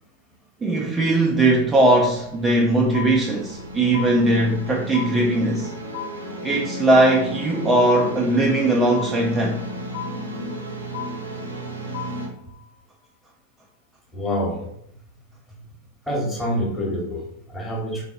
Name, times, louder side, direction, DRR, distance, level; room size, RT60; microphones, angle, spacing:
voice 1, 0.6-5.7 6.4-9.6, right 1 dB, 15° right, -1 dB, 0.4 m, -19 dB
sound 1, 1.6-12.3, equal, 80° right, 0.6 m, -34 dB
sound 2, 2.9-3.6 3.9-4.7 4.9-5.7 5.9-6.7 6.9-7.7 7.9-8.7 8.9-9.7 9.9-10.7 10.9-11.7 11.9-12.7, left 9 dB, 55° left, 0.6 m, -36 dB
voice 2, 14.1-14.7 16.1-18.0, equal, 10° left, -3 dB, 1.0 m, -26 dB
3.7 x 2.6 x 2.5 m, 0.76 s
figure-of-eight pair, 90°, 0 cm